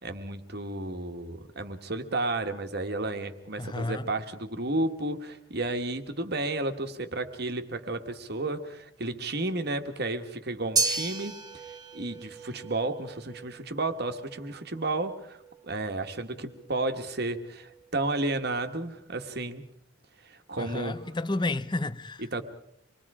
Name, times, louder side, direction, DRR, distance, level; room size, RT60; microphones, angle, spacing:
voice 1, 0.0-11.6 11.9-15.4 15.6-19.6 20.2-21.0 22.2-22.4, right 2 dB, 55° right, 1.6 m, -32 dB
voice 2, 3.6-4.1 20.6-22.2, left 2 dB, 25° left, 0.7 m, -31 dB
sound 1, 10.8-19.1, right 4 dB, 20° right, 1.5 m, -36 dB
26.5 x 21.5 x 5.0 m
head